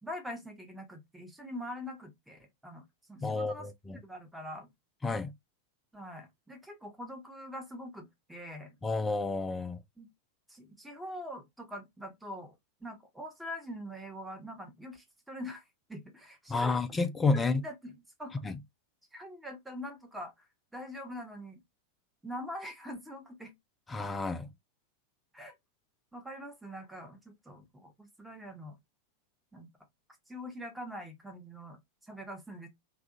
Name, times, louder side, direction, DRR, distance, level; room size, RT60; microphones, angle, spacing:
voice 1, 0.0-4.7 5.9-8.8 10.0-10.1 10.5-12.6 12.8-15.6 15.9-16.8 17.6-18.3 19.1-20.5 20.7-21.6 22.2-23.5 25.3-25.5 26.1-28.8 29.5-29.7 30.3-32.7, equal, 5° right, 0.8 m, -44 dB
voice 2, 3.2-4.0 5.0-5.3 8.8-9.8 16.5-17.6 18.4-18.6 23.9-24.5, left 3 dB, 15° left, 0.4 m, -30 dB
2.7 x 2.4 x 2.4 m
figure-of-eight pair, 90°, 0 cm